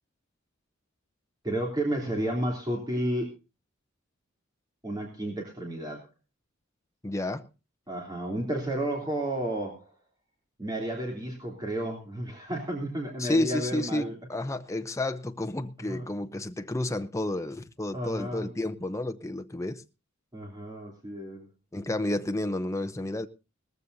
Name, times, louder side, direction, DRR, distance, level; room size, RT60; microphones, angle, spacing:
voice 1, 1.4-3.3 4.8-6.1 7.9-9.9 10.6-14.2 15.8-16.1 17.9-18.5 20.3-21.5, right 1 dB, 20° right, 3.1 m, -32 dB
voice 2, 7.0-7.5 13.2-19.8 21.7-23.3, left 1 dB, 15° left, 0.7 m, -31 dB
19.0 x 14.5 x 2.7 m
head